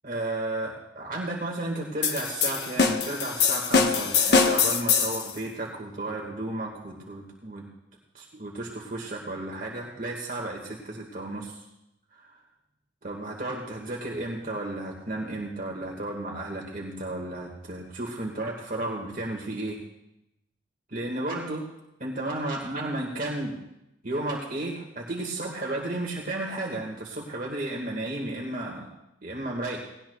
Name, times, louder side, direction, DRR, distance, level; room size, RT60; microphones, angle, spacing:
voice 1, 0.0-7.7 8.1-11.6 12.1-12.4 13.0-19.8 20.9-21.6 22.0-23.6 24.0-28.9 29.2-29.8, right 2 dB, 45° right, -1 dB, 1.8 m, -33 dB
sound 1, 2.0-5.3, left 5 dB, 60° left, 1.0 m, -23 dB
19.0 x 17.5 x 2.3 m, 0.87 s
head